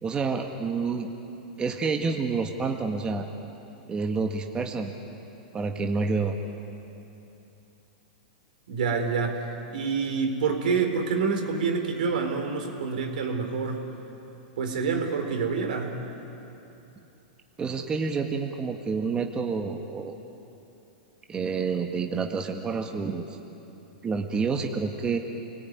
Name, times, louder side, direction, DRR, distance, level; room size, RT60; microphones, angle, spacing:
voice 1, 0.0-1.1 1.6-3.3 3.9-4.9 5.5-6.3 17.6-20.2 21.3-23.4 24.0-25.2, right 4 dB, 20° right, 3 dB, 1.7 m, -28 dB
voice 2, 8.7-13.8 14.6-16.0, right 5 dB, 75° right, 4 dB, 4.0 m, -27 dB
29.0 x 19.5 x 9.6 m, 2.9 s
hypercardioid pair, 130°, 5 cm